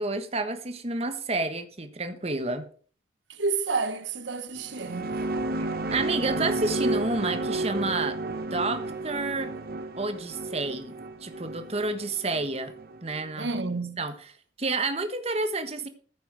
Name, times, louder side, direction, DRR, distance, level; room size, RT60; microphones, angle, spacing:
voice 1, 0.0-2.7 5.9-9.5 10.0-12.7 13.0-13.5 14.0-14.1 14.6-15.9, right 3 dB, 35° right, 1.4 m, -30 dB
voice 2, 3.3-5.2 13.4-14.1, right 4 dB, 85° right, 1.4 m, -30 dB
sound 1, 4.6-13.2, right 2 dB, 55° right, 1.4 m, -32 dB
14.5 x 8.2 x 4.8 m
head